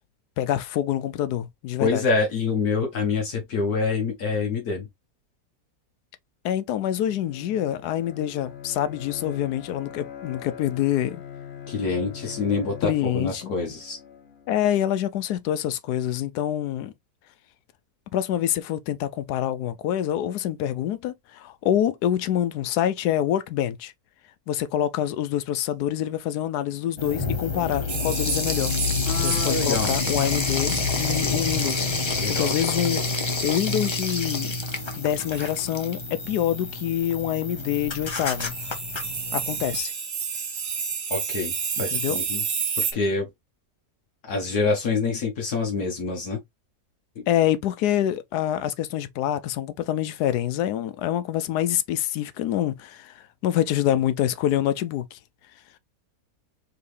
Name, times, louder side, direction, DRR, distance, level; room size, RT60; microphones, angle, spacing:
voice 1, 0.4-2.0 6.4-11.2 12.8-13.5 14.5-16.9 18.1-23.9 24.5-28.7 29.2-31.9 32.3-33.0 33.4-34.5 35.0-38.6 39.3-39.9 41.8-42.2 47.3-55.2, left 11 dB, 90° left, 1.1 m, -26 dB
voice 2, 1.8-4.9 11.7-14.0 29.1-30.0 32.2-32.5 41.1-42.4 42.8-43.3 44.2-46.4 47.2-47.3, left 4 dB, 75° left, 1.6 m, -26 dB
Bowed string instrument, 6.8-14.7, left 8 dB, 50° left, 0.8 m, -41 dB
sound 1, 27.0-39.8, left 3 dB, 35° left, 0.5 m, -28 dB
sound 2, 27.9-34.1 34.3-34.4 34.7-34.9 35.3-35.5 36.2-36.3 38.2-42.9, right 6 dB, 55° right, 1.4 m, -32 dB
4.6 x 2.9 x 3.2 m
omnidirectional pair, 1.7 m